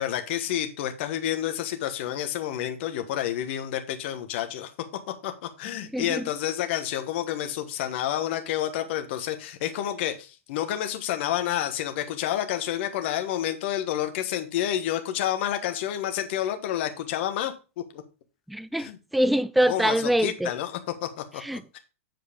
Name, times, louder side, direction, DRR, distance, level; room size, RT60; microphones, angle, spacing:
voice 1, 0.0-4.7 5.2-18.0 18.8-19.0 19.6-21.4 21.7-21.8, left 11 dB, 50° left, 1.3 m, -29 dB
voice 2, 18.5-18.9 19.1-20.5 21.4-21.8, right 1 dB, ahead, 0.3 m, -24 dB
7.8 x 4.7 x 5.1 m
hypercardioid pair, 125°, 7 cm